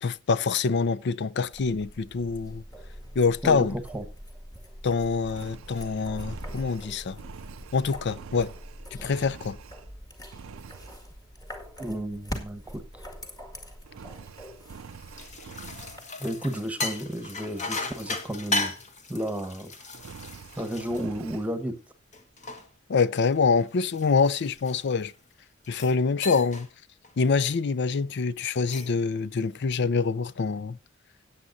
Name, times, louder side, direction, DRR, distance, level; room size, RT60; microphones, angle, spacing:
voice 1, 0.0-2.6 3.2-3.8 4.8-7.2 7.7-8.5 8.9-9.6 22.9-25.1 25.7-26.7 27.2-30.8, left 4 dB, 55° left, 0.5 m, -25 dB
sound 1, 1.5-16.0, equal, 20° left, 2.0 m, -43 dB
voice 2, 3.4-4.0 11.8-12.8 16.2-18.7 19.1-19.7 20.6-21.8, equal, 5° right, 1.2 m, -32 dB
Engine, 5.2-10.0 10.3-11.0 13.8-16.1 19.9-21.5, right 6 dB, 75° right, 0.5 m, -46 dB
sound 2, 14.9-21.7 22.1-25.1 25.6-26.0 26.2-26.7 27.0-27.3 28.5-29.0, left 3 dB, 35° left, 1.4 m, -36 dB
17.5 x 8.6 x 2.6 m
head